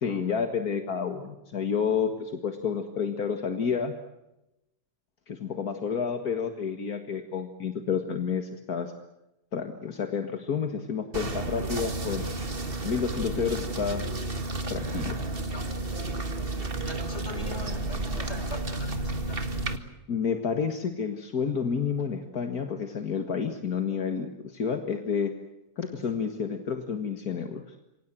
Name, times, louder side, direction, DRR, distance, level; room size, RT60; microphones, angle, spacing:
voice 1, 0.0-3.9 5.3-8.9 9.5-12.2 12.8-14.1 14.7-15.2 20.1-25.3 25.8-27.8, left 6 dB, 75° left, 6 dB, 2.2 m, -30 dB
sound 1, 11.1-19.8, right 2 dB, 35° right, 2.1 m, -32 dB
voice 2, 16.5-19.6 25.9-26.2, equal, 45° left, 7 dB, 5.6 m, -42 dB
28.0 x 24.5 x 7.6 m, 0.93 s
omnidirectional pair, 1.6 m